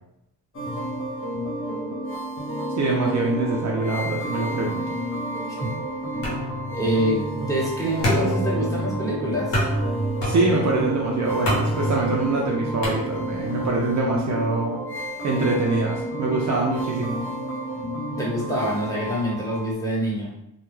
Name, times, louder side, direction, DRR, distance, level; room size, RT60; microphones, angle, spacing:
sound 1, 0.5-19.7, equal, 30° left, 0.6 m, -31 dB
voice 1, 2.8-4.8 10.2-14.8 15.2-17.3, right 3 dB, 45° right, -2 dB, 0.5 m, -24 dB
sound 2, 6.2-13.6, equal, 90° left, 1.0 m, -28 dB
voice 2, 6.7-9.7 18.1-20.3, equal, 10° left, -6 dB, 1.1 m, -26 dB
2.4 x 2.2 x 3.1 m, 0.80 s
cardioid pair, 90°, 41 cm